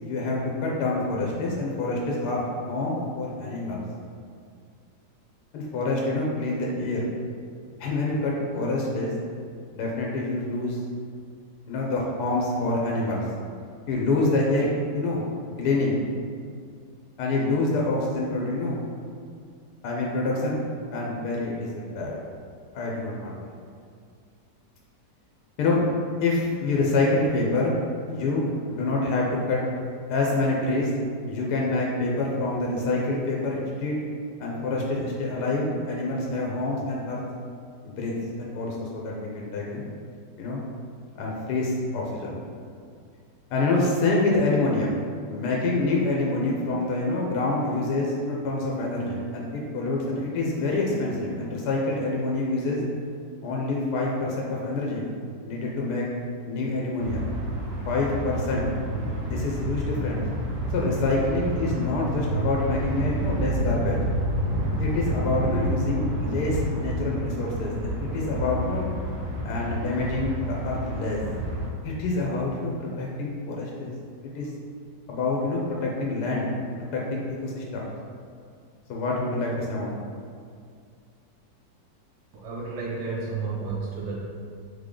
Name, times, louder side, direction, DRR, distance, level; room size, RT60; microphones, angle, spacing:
voice 1, 0.0-3.8 5.5-7.1 7.8-9.1 9.7-10.8 11.7-13.2 13.9-15.2 15.6-16.0 17.2-18.8 19.8-20.6 20.9-22.2 22.7-23.3 25.6-25.9 26.2-27.8 28.1-29.6 30.1-30.9 31.3-34.0 34.4-37.2 37.8-39.9 40.4-40.6 41.2-42.4 43.5-44.9 45.3-52.8 53.4-55.1 55.4-56.1 56.5-57.3 57.9-58.7 59.2-60.2 60.7-64.0 64.8-68.9 69.4-71.2 71.8-73.9 74.3-74.5 75.1-76.5 76.9-77.9 78.9-80.0, left 2 dB, 70° left, -2 dB, 1.2 m, -26 dB
sound 1, 57.0-71.7, equal, 45° right, 0.5 m, -29 dB
voice 2, 82.3-84.2, right 4 dB, 90° right, -4 dB, 1.4 m, -31 dB
3.6 x 3.5 x 3.7 m, 2.2 s
omnidirectional pair, 1.9 m